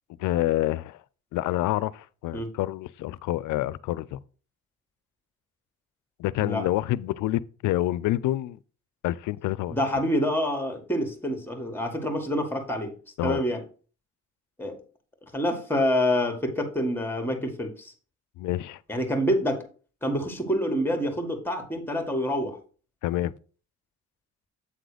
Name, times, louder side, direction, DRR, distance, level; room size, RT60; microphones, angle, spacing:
voice 1, 0.2-1.0 1.3-4.2 6.2-8.6 9.0-9.8 13.2-13.4 18.4-18.8 23.0-23.3, left 15 dB, 80° left, 0.5 m, -27 dB
voice 2, 9.7-12.9 13.2-13.6 14.6-14.8 15.3-17.9 18.9-19.6 20.0-22.6, equal, 5° left, 1.9 m, -27 dB
8.4 x 3.8 x 5.0 m
cardioid pair, 90°, 30 cm